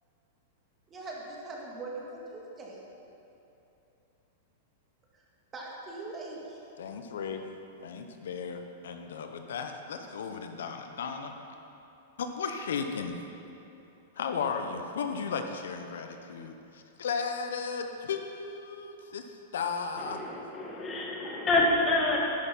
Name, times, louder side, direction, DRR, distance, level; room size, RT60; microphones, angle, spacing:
voice 1, 0.9-2.8 5.5-6.6, right 2 dB, 20° right, -3 dB, 1.9 m, -41 dB
voice 2, 6.8-7.6 7.8-11.3 12.2-13.2 14.2-20.2, left 5 dB, 80° left, 6 dB, 0.7 m, -35 dB
voice 3, 20.0-22.2, left 2 dB, 20° left, -2 dB, 1.8 m, -27 dB
11.0 x 6.4 x 5.7 m, 2.9 s
hypercardioid pair, 135°, 0 cm